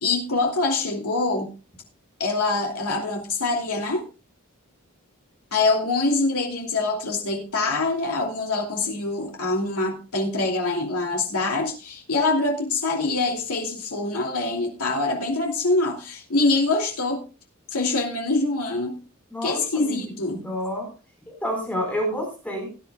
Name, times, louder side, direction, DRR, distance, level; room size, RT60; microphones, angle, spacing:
voice 1, 0.0-1.5 2.2-4.0 5.5-17.2 17.7-19.0 19.4-20.4, left 3 dB, 90° left, 1 dB, 2.7 m, -24 dB
voice 2, 19.3-20.9 21.3-22.7, equal, 5° left, 1 dB, 4.7 m, -29 dB
18.5 x 10.5 x 2.3 m, 0.32 s
head